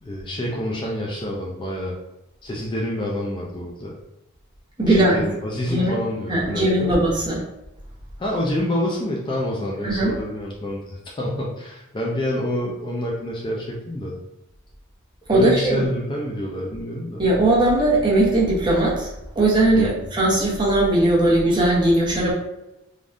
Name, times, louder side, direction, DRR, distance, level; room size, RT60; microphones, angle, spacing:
voice 1, 0.0-2.0 2.4-4.0 4.9-7.0 8.2-14.2 15.3-17.2 19.7-20.1, left 1 dB, 25° left, -3 dB, 0.4 m, -27 dB
voice 2, 4.8-5.2 5.7-6.0 6.3-7.4 9.8-10.1 15.3-15.8 17.2-19.1 19.3-22.3, right 1 dB, 20° right, -6 dB, 0.9 m, -19 dB
3.4 x 2.3 x 2.5 m, 0.94 s
head